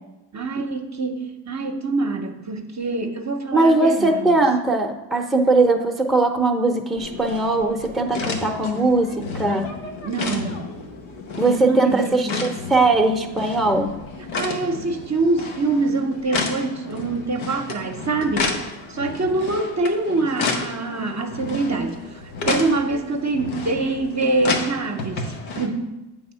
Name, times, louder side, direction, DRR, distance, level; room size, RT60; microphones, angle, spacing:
voice 1, 0.3-4.4 10.0-10.6 11.5-12.5 14.3-18.6 18.9-25.9, right 3 dB, 35° right, 4 dB, 0.8 m, -25 dB
voice 2, 3.5-9.7 11.4-13.9, right 2 dB, ahead, 1 dB, 0.7 m, -20 dB
sound 1, 7.0-25.7, left 4 dB, 90° left, 0.9 m, -31 dB
7.9 x 3.5 x 5.6 m, 1.0 s
cardioid pair, 70°, 46 cm